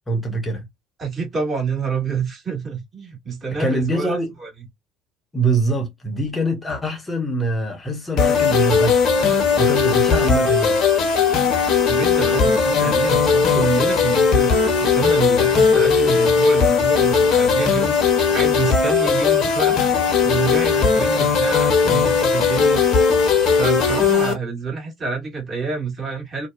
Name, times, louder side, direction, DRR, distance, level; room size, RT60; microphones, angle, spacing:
voice 1, 0.1-0.7 3.6-4.3 5.3-9.0 9.6-10.8, right 2 dB, 20° left, 0.8 m, -23 dB
voice 2, 1.0-4.5 11.9-14.5 14.8-19.8 20.2-22.8 23.5-26.5, right 5 dB, 35° right, 1.5 m, -27 dB
sound 1, 8.2-24.3, left 5 dB, 50° left, 0.8 m, -18 dB
2.6 x 2.1 x 2.3 m
figure-of-eight pair, 60°, 0 cm